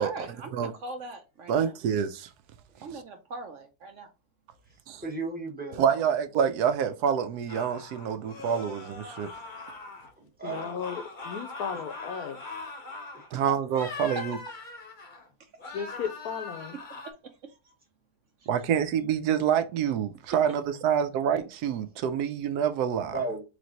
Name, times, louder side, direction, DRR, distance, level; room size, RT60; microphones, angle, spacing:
voice 1, 0.0-1.7 2.8-4.1 13.3-13.4 14.2-14.3 15.4-15.5 17.4-17.7 18.4-18.5, right 2 dB, 65° right, 0.8 m, -42 dB
voice 2, 1.5-2.3 4.9-5.0 5.8-9.3 13.3-14.4 18.5-23.1, right 8 dB, 80° right, 1.1 m, -27 dB
voice 3, 5.0-6.0 10.2-10.8 11.7-11.8 13.1-13.3 23.0-23.4, right 3 dB, 10° right, 0.8 m, -35 dB
sound 1, 7.5-10.1 10.4-13.3 13.7-15.3 15.6-17.1, left 3 dB, 40° left, 0.8 m, -41 dB
voice 4, 10.4-12.4 15.7-16.8, left 7 dB, 75° left, 1.1 m, -35 dB
3.5 x 3.2 x 3.9 m
omnidirectional pair, 1.7 m